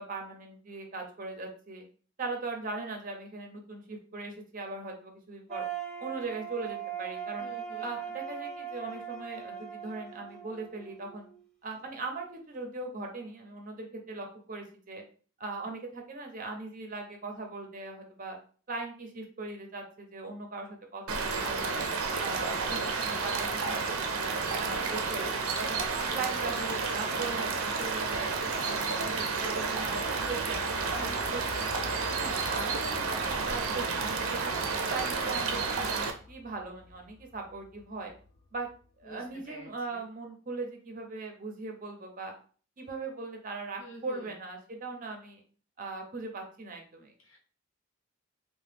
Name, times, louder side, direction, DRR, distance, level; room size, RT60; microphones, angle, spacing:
voice 1, 0.0-1.8 2.2-5.6 6.0-7.5 7.8-11.3 11.6-15.0 15.4-18.4 18.7-21.8 22.2-25.3 25.6-25.8 26.1-28.7 29.0-31.8 32.2-34.6 34.9-38.1 38.5-38.7 39.0-42.3 42.8-45.4 45.8-47.1, right 3 dB, 40° right, 3 dB, 0.5 m, -39 dB
sound 1, 5.5-11.4, right 8 dB, 5° left, 0.6 m, -40 dB
voice 2, 7.4-7.9 39.0-40.0 43.8-44.3 47.2-47.4, equal, 70° left, 0 dB, 0.9 m, -48 dB
sound 2, 21.1-36.1, right 4 dB, 85° right, 0.5 m, -31 dB
sound 3, 29.4-39.3, left 3 dB, 45° left, 0.4 m, -49 dB
2.9 x 2.1 x 3.3 m, 0.42 s
head